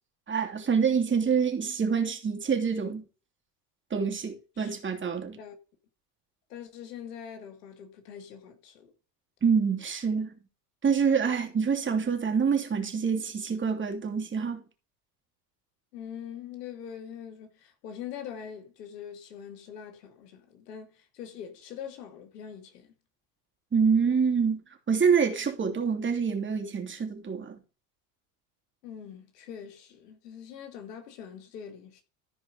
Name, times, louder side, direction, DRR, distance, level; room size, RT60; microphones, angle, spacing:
voice 1, 0.3-3.0 3.9-5.4 9.4-10.3 10.8-14.6 23.7-27.6, right 6 dB, 25° right, 2.8 m, -26 dB
voice 2, 6.5-8.9 15.9-22.9 28.8-32.0, left 8 dB, 90° left, 2.4 m, -43 dB
14.5 x 4.8 x 5.2 m
supercardioid pair, 95°, 47 cm